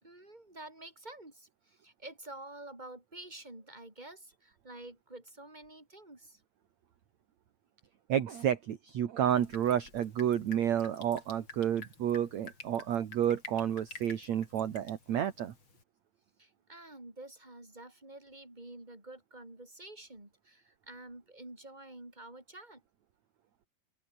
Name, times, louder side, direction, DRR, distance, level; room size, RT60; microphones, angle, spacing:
voice 1, 0.0-6.4 16.4-22.8, right 2 dB, 10° right, 5.9 m, -49 dB
voice 2, 8.1-15.5, right 10 dB, 55° right, 2.7 m, -30 dB
Drip, 9.2-15.8, left 3 dB, 35° left, 5.6 m, -51 dB
open air
omnidirectional pair, 4.2 m